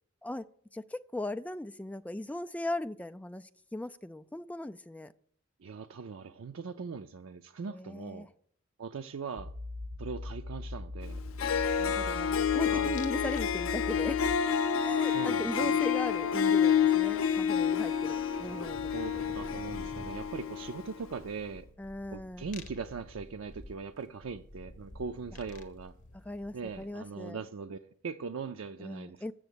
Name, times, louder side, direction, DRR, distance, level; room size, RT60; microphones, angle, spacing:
voice 1, 0.7-5.1 7.7-8.3 11.5-14.3 14.8-19.5 21.8-22.5 26.3-27.4 28.8-29.3, left 1 dB, 5° left, 9 dB, 0.4 m, -38 dB
voice 2, 5.6-8.3 8.8-9.5 10.0-11.2 12.7-13.0 15.0-15.8 18.4-18.5 18.9-21.7 22.1-25.9 26.5-29.2, right 5 dB, 90° right, 7 dB, 0.5 m, -40 dB
sound 1, 9.4-14.4, left 2 dB, 30° right, 0.9 m, -40 dB
Harp, 11.1-11.2 11.4-20.9, left 7 dB, 85° left, 0.6 m, -29 dB
sound 2, 12.9-13.5 13.8-14.2 16.7-16.8 17.0-27.1, left 1 dB, 40° left, 1.0 m, -50 dB
7.8 x 7.0 x 8.4 m, 0.63 s
head